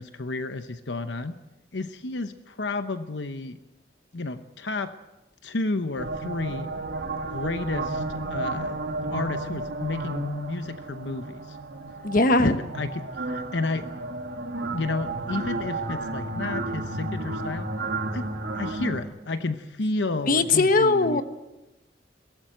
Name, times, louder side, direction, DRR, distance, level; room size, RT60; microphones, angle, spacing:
voice 1, 0.0-1.4 1.7-3.6 4.1-4.9 5.4-6.7 7.3-8.0 8.3-8.8 9.1-11.6 12.4-12.9 13.2-13.9 14.7-17.7 18.1-18.3 18.5-21.2, left 3 dB, 75° left, 9 dB, 0.9 m, -31 dB
sound 1, 6.0-19.0, right 2 dB, 75° right, 2.5 m, -32 dB
voice 2, 12.0-12.6 20.3-21.2, left 2 dB, 50° left, 9 dB, 1.3 m, -20 dB
22.5 x 17.5 x 7.9 m, 1.0 s
head